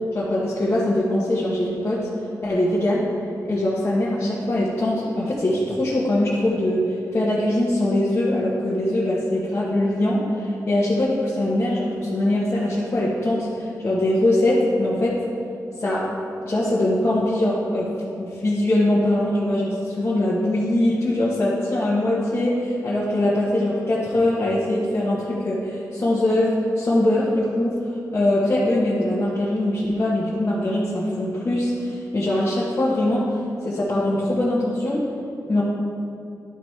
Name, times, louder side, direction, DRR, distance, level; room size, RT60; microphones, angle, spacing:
voice 1, 0.1-2.1 2.4-3.1 3.4-6.9 7.1-15.2 15.8-16.1 16.4-17.9 18.2-27.8 28.1-33.3 33.6-35.0 35.5-35.6, left 1 dB, 35° left, -8 dB, 1.3 m, -22 dB
11.5 x 4.1 x 4.6 m, 2.6 s
wide cardioid pair, 115°, 7 cm